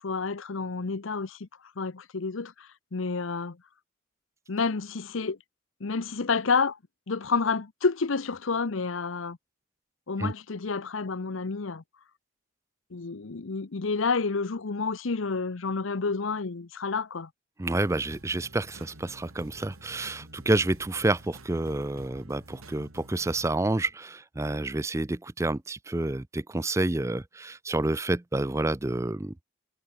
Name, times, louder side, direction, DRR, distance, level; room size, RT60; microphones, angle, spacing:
voice 1, 0.0-1.5 1.8-3.6 4.5-5.4 5.8-6.8 7.1-9.4 10.1-11.8 12.9-17.3, left 4 dB, 70° left, 0.8 m, -29 dB
voice 2, 17.6-29.3, right 2 dB, 15° right, 0.4 m, -29 dB
sound 1, 17.8-23.5, right 1 dB, 85° right, 3.4 m, -49 dB
head